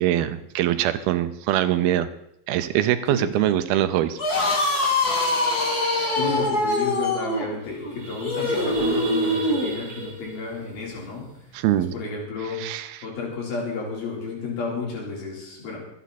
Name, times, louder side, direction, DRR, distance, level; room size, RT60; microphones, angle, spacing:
voice 1, 0.0-2.1 2.5-4.2 11.5-11.9 12.6-12.9, right 12 dB, 85° right, 12 dB, 2.7 m, -23 dB
voice 2, 3.1-3.6 4.9-5.0 6.1-11.3 11.8-12.6 13.0-15.8, left 4 dB, 75° left, -2 dB, 5.8 m, -32 dB
sound 1, 4.1-9.7, left 2 dB, 30° left, 2.1 m, -23 dB
sound 2, 6.6-6.7 6.9-7.2 7.5-11.9, right 2 dB, 40° right, 2.5 m, -37 dB
24.5 x 9.4 x 4.2 m, 0.75 s
omnidirectional pair, 4.3 m